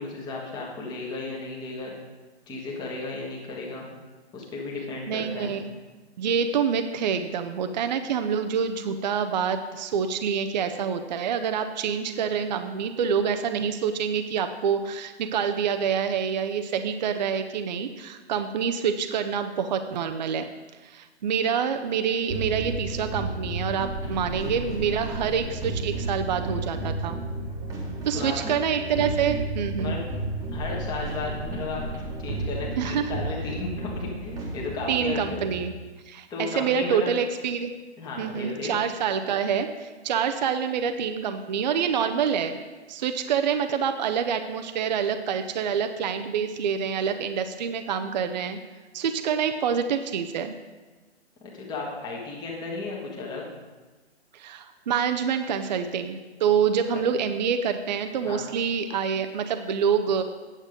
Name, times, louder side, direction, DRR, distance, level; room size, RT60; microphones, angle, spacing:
voice 1, 0.0-1.9 2.5-3.9 4.3-5.5 28.1-28.6 29.8-30.0 30.5-31.8 32.2-35.5 36.3-37.1 38.0-38.8 51.4-53.4 56.9-57.0 58.2-58.5, left 3 dB, 10° left, -3 dB, 1.4 m, -34 dB
voice 2, 5.1-5.7 6.2-20.5 20.8-27.2 28.0-30.0 32.8-33.1 34.9-35.7 36.1-37.7 38.2-42.6 42.9-48.6 48.9-50.6 54.3-60.2, right 7 dB, 40° right, 7 dB, 0.6 m, -26 dB
sound 1, 22.3-35.6, right 2 dB, 10° right, 1.3 m, -32 dB
9.1 x 7.4 x 5.0 m, 1.2 s
hypercardioid pair, 145°, 33 cm